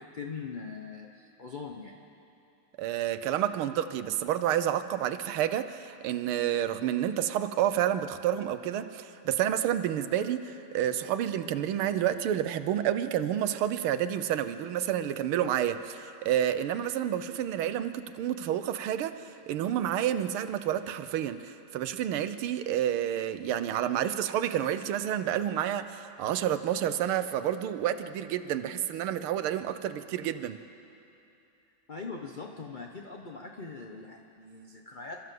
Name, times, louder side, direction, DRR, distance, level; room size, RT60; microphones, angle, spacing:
voice 1, 0.0-2.0 31.9-35.3, left 4 dB, 40° left, 1 dB, 0.7 m, -41 dB
voice 2, 2.8-19.1 19.5-30.6, right 10 dB, 80° right, 11 dB, 1.7 m, -29 dB
27.0 x 13.5 x 7.7 m, 2.8 s
omnidirectional pair, 2.4 m